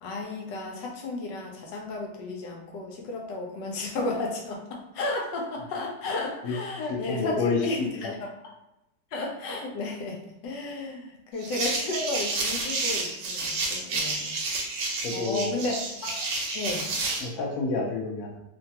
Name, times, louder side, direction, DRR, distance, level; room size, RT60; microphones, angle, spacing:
voice 1, 0.0-8.1 9.1-14.3 15.1-16.9, left 2 dB, 80° left, 0 dB, 1.3 m, -33 dB
voice 2, 6.9-8.1 15.0-15.6 17.2-18.4, left 4 dB, 65° left, -1 dB, 0.8 m, -29 dB
sound 1, 11.4-17.3, right 3 dB, 80° right, 1.3 m, -30 dB
3.2 x 2.2 x 2.7 m, 0.91 s
omnidirectional pair, 2.0 m